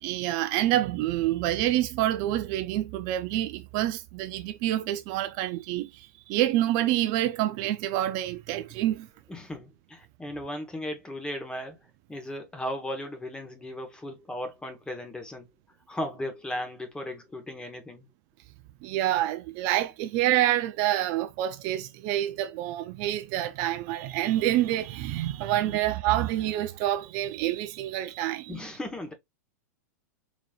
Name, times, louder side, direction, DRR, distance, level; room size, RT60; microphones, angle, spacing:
voice 1, 0.0-9.1 18.8-28.7, right 13 dB, 45° right, 0.5 m, -27 dB
voice 2, 9.3-11.8 12.1-15.5 15.9-18.1 25.6-25.8 28.5-29.1, left 1 dB, 10° left, 1.2 m, -36 dB
4.0 x 3.2 x 2.4 m
hypercardioid pair, 120°, 9 cm